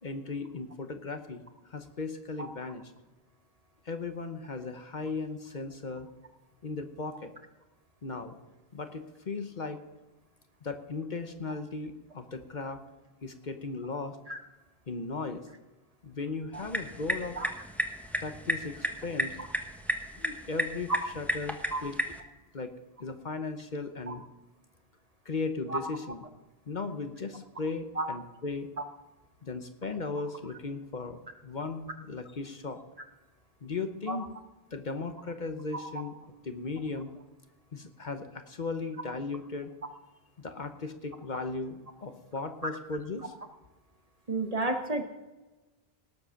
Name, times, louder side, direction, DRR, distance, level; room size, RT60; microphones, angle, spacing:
voice 1, 0.0-2.9 3.8-6.1 6.6-7.3 8.0-8.4 8.7-9.8 10.6-12.8 13.2-14.2 14.9-15.5 16.0-17.4 18.2-19.4 20.2-20.9 21.2-21.9 22.5-22.7 23.0-24.2 25.2-26.2 26.7-28.7 29.4-32.8 33.6-34.3 34.7-36.2 36.4-37.1 37.7-39.7 40.4-43.3, left 3 dB, 50° left, 8 dB, 1.0 m, -37 dB
sound 1, 16.5-22.2, equal, ahead, 1.1 m, -34 dB
voice 2, 44.3-45.0, right 2 dB, 35° right, 6 dB, 1.1 m, -31 dB
18.5 x 7.7 x 5.7 m, 1.1 s
omnidirectional pair, 1.1 m